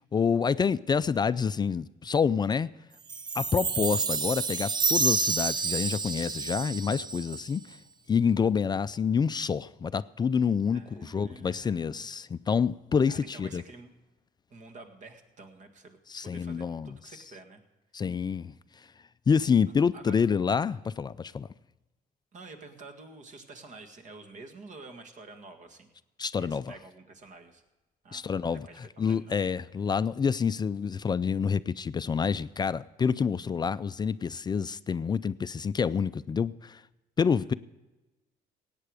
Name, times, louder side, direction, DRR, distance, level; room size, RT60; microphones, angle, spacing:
voice 1, 0.1-2.7 3.4-7.8 8.1-13.6 16.1-16.9 17.9-18.5 19.3-21.5 26.2-26.7 28.1-36.8 37.2-37.5, left 6 dB, 25° left, 0.3 m, -27 dB
Chime, 3.1-7.6, right 4 dB, 25° right, 0.6 m, -29 dB
voice 2, 10.7-12.1 13.1-13.9 14.5-17.6 19.9-20.1 22.3-25.9 26.4-27.6 28.0-29.5 37.4-37.5, right 3 dB, 45° right, 1.9 m, -49 dB
17.0 x 9.1 x 4.9 m
cardioid pair, 110°, 17 cm